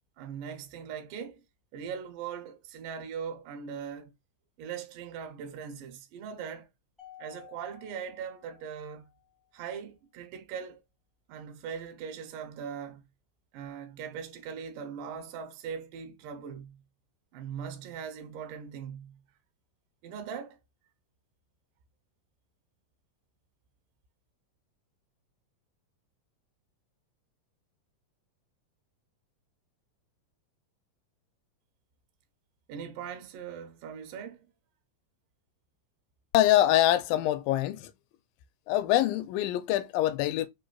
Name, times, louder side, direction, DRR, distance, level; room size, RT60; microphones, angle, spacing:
voice 1, 0.2-1.4 1.7-4.1 4.6-6.7 7.2-9.1 9.5-10.8 11.3-13.0 13.5-16.8 17.3-19.2 20.0-20.6 32.7-34.5, right 7 dB, 80° right, 2.3 m, -40 dB
Mallet percussion, 7.0-9.4, left 12 dB, ahead, 1.6 m, -53 dB
voice 2, 36.3-37.9 38.7-40.5, left 13 dB, 85° left, 2.2 m, -24 dB
5.1 x 3.9 x 2.3 m
omnidirectional pair, 3.9 m